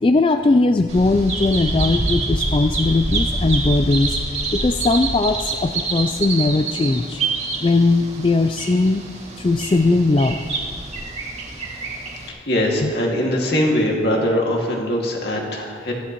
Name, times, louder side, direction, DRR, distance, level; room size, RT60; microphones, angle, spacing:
voice 1, 0.0-4.2 4.5-7.2 7.6-9.0 9.4-10.4 12.8-12.9, left 3 dB, 30° left, 7 dB, 0.3 m, -19 dB
Bird vocalization bird call bird song, 0.9-12.3, right 3 dB, 35° right, 2.1 m, -26 dB
voice 2, 12.3-15.9, left 1 dB, 60° left, -1 dB, 2.1 m, -21 dB
15.0 x 15.0 x 3.0 m, 2.2 s
head